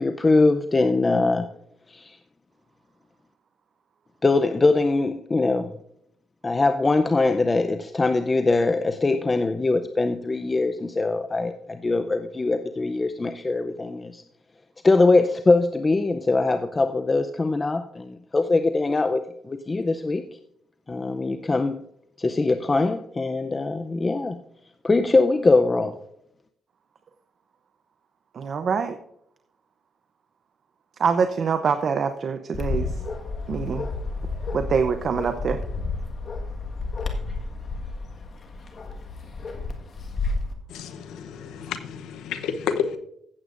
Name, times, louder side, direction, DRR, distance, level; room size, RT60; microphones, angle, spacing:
voice 1, 0.0-1.5 1.9-2.2 4.2-5.7 6.4-14.2 14.8-20.2 20.9-21.8 22.2-24.4 24.8-26.0, left 3 dB, 25° left, 0.6 m, -22 dB
voice 2, 28.3-29.0 31.0-32.9 33.5-33.9 34.5-35.6, right 6 dB, 55° right, 0.7 m, -24 dB
Bark, 32.5-40.5, left 3 dB, 45° left, 1.5 m, -31 dB
voice 3, 40.7-43.0, left 7 dB, 85° left, 0.8 m, -30 dB
16.0 x 8.1 x 2.5 m
cardioid pair, 90°, 0 cm